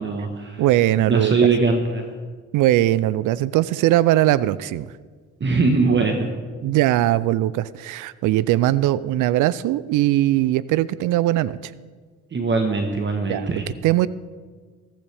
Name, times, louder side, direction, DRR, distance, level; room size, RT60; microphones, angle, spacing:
voice 1, 0.0-0.6 1.1-2.0 5.4-6.3 12.3-13.7, right 4 dB, 40° right, 4 dB, 1.3 m, -21 dB
voice 2, 0.6-1.3 2.5-4.8 6.6-11.6 13.3-13.5 13.8-14.1, right 14 dB, 85° right, 18 dB, 0.5 m, -20 dB
14.5 x 14.5 x 3.4 m, 1.5 s
cardioid pair, 90°, 30 cm